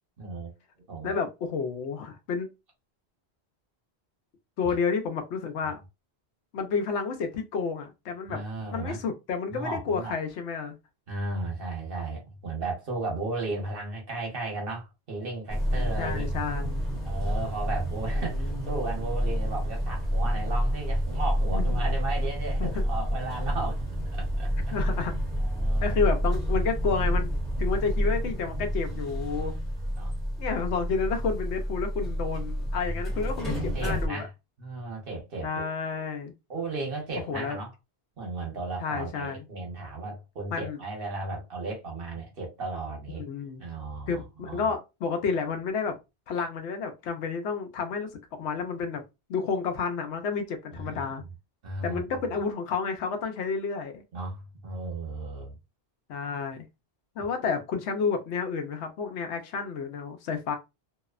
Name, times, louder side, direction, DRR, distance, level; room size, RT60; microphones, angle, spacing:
voice 1, 0.2-0.5 0.9-1.2 4.6-4.8 8.3-9.0 9.5-10.1 11.1-16.3 17.0-24.5 25.4-26.0 28.9-29.0 30.0-30.1 33.1-34.3 34.6-35.7 36.5-37.7 38.2-43.2 43.6-44.7 50.7-51.3 51.6-52.0 54.1-55.5, right 3 dB, 60° right, 1.1 m, -35 dB
voice 2, 1.0-2.5 4.6-5.8 6.5-8.4 8.7-10.8 15.7-17.0 18.3-18.6 21.5-21.8 22.6-22.8 24.7-25.1 25.8-27.3 27.6-29.5 30.4-34.2 35.4-36.3 37.3-37.6 38.8-39.4 40.5-40.8 43.2-43.6 44.1-46.0 46.3-49.0 49.3-51.2 51.8-54.0 56.1-56.7 57.2-60.6, left 5 dB, 85° left, 0.9 m, -30 dB
sound 1, 15.5-34.1, equal, ahead, 0.6 m, -29 dB
2.7 x 2.0 x 2.3 m
omnidirectional pair, 1.1 m